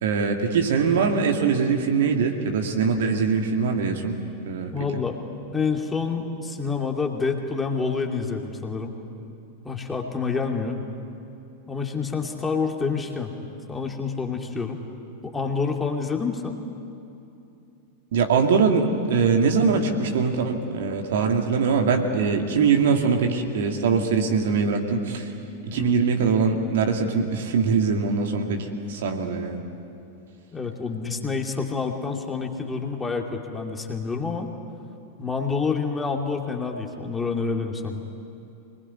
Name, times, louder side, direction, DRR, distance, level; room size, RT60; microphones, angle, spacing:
voice 1, 0.0-4.1 4.4-4.7 18.1-25.3 25.6-29.6, right 5 dB, 60° right, 3 dB, 2.3 m, -22 dB
voice 2, 4.7-5.2 5.5-8.9 9.6-10.8 11.7-13.3 13.7-14.8 15.2-16.6 25.7-26.0 30.5-34.5 35.2-38.0, left 4 dB, 10° left, 2 dB, 2.6 m, -28 dB
25.0 x 20.5 x 9.6 m, 2.8 s
figure-of-eight pair, 90°, 0 cm